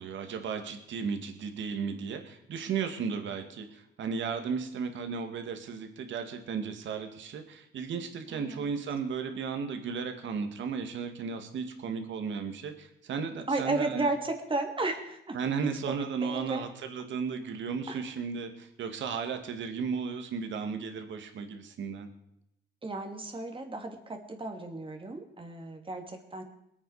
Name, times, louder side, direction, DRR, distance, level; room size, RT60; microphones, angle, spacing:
voice 1, 0.0-14.1 15.3-22.1, right 5 dB, 70° right, 6 dB, 2.2 m, -35 dB
voice 2, 8.3-8.7 13.5-15.4 15.9-16.6 17.9-18.0 22.8-26.4, right 2 dB, 25° right, 4 dB, 2.9 m, -34 dB
22.0 x 8.9 x 5.0 m, 0.79 s
cardioid pair, 90°, 20 cm